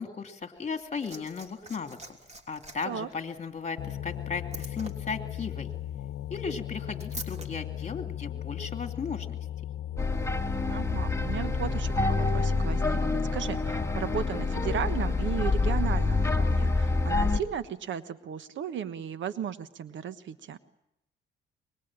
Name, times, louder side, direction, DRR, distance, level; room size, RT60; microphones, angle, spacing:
voice 1, 0.0-2.0 2.5-5.7 6.3-9.4, left 5 dB, 35° left, 7 dB, 2.7 m, -36 dB
Liquid, 0.6-7.5 8.6-8.7, right 2 dB, 35° right, 3.3 m, -47 dB
sound 1, 3.8-15.1, left 12 dB, 75° left, 0.9 m, -38 dB
sound 2, 10.0-17.4, left 3 dB, 15° left, 1.9 m, -27 dB
voice 2, 10.7-20.6, right 8 dB, 70° right, 12 dB, 1.4 m, -35 dB
24.5 x 22.0 x 8.8 m, 0.82 s
cardioid pair, 90°, 20 cm